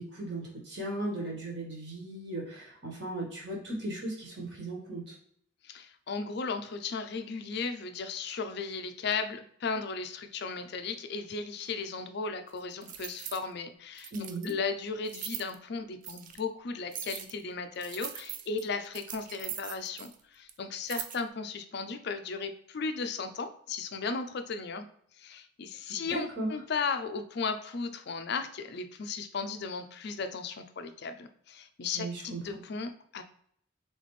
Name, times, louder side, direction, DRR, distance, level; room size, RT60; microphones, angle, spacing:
voice 1, 0.0-5.1 14.1-14.5 25.9-26.5 31.9-32.4, right 1 dB, 55° right, -2 dB, 1.6 m, -37 dB
voice 2, 5.6-14.1 14.4-24.9 25.2-33.2, left 4 dB, 50° left, 8 dB, 0.4 m, -36 dB
sound 1, 12.6-13.4 14.0-14.5 15.0-15.5 16.0-16.4 16.9-17.4 17.8-20.2 20.5-20.6 20.8-21.2, right 10 dB, 40° right, 0.4 m, -41 dB
4.1 x 3.4 x 3.1 m, 0.65 s
head